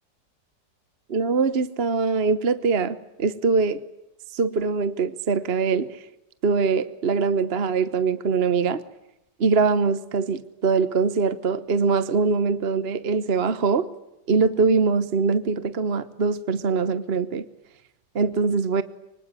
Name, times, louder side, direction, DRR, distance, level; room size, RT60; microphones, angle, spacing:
voice 1, 1.1-3.8 4.3-6.0 6.4-8.8 9.4-13.9 14.3-17.4 18.1-18.8, right 4 dB, 40° right, 14 dB, 1.2 m, -23 dB
25.5 x 25.0 x 9.2 m, 0.88 s
omnidirectional pair, 1.9 m